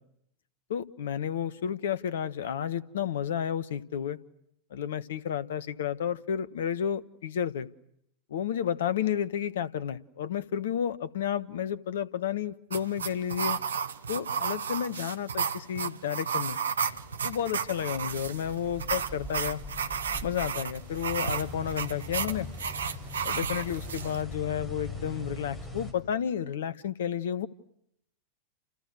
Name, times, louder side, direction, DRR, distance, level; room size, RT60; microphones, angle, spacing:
voice 1, 0.7-4.2 4.7-7.7 8.3-13.6 14.1-16.6 17.2-19.6 20.2-22.5 23.2-27.5, left 9 dB, 60° left, 19 dB, 1.4 m, -31 dB
sound 1, 12.7-24.2, right 6 dB, 70° right, 1.3 m, -33 dB
sound 2, 16.8-25.9, left 1 dB, 15° left, 6.8 m, -42 dB
30.0 x 29.5 x 6.3 m, 0.75 s
figure-of-eight pair, 90°, 0 cm